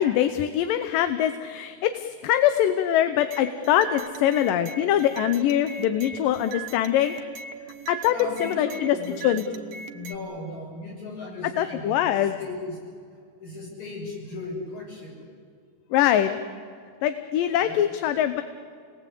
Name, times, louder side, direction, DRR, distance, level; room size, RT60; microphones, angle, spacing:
voice 1, 0.0-7.2 7.9-8.1 8.4-9.0 9.2-9.4 11.6-12.3 15.9-16.3 17.0-18.4, left 11 dB, 85° left, 10 dB, 2.5 m, -23 dB
sound 1, 3.3-10.2, right 6 dB, 80° right, 2.9 m, -40 dB
voice 2, 8.0-9.6 9.9-12.8 13.4-15.1 17.6-17.8, left 2 dB, 55° left, -2 dB, 8.5 m, -37 dB
28.5 x 20.0 x 8.5 m, 2.1 s
omnidirectional pair, 3.8 m